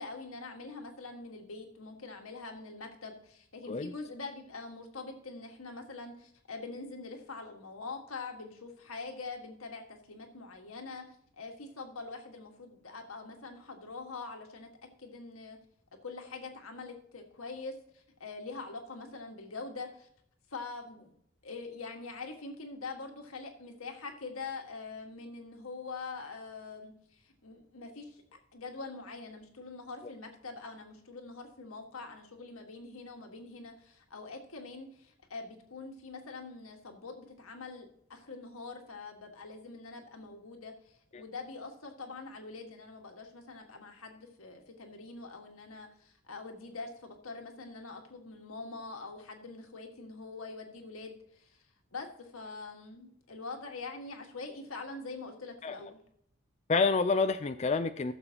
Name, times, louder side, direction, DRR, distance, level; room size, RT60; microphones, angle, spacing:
voice 1, 0.0-11.0 11.4-14.7 15.0-15.6 16.0-20.1 20.5-21.1 21.4-26.9 27.3-28.2 28.5-51.6 51.9-56.0, left 3 dB, 90° left, 3 dB, 1.7 m, -44 dB
voice 2, 56.7-58.1, left 4 dB, 30° left, 9 dB, 0.4 m, -28 dB
14.5 x 6.9 x 2.9 m, 0.68 s
head